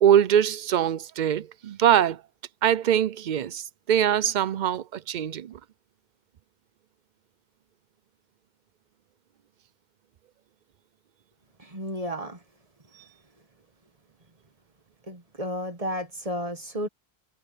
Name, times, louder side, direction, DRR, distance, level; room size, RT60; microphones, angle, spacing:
voice 1, 0.0-2.2 2.6-5.6, right 10 dB, 55° right, 0.6 m, -23 dB
voice 2, 11.6-12.4 15.0-16.9, equal, 35° right, 1.8 m, -32 dB
omnidirectional pair, 1.1 m